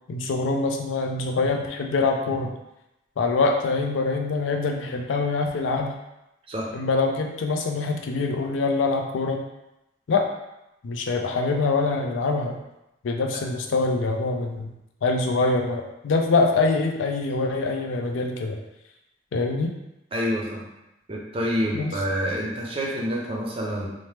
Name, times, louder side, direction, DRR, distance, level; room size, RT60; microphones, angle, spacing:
voice 1, 0.1-2.6 3.2-5.9 6.7-9.4 10.1-10.3 10.8-12.6 13.0-14.7 15.0-18.6 19.3-19.7 21.7-22.0, left 3 dB, 90° left, 3 dB, 0.4 m, -24 dB
voice 2, 20.1-20.7 21.1-23.9, equal, 30° right, -2 dB, 0.5 m, -27 dB
2.9 x 2.0 x 3.2 m, 0.91 s
head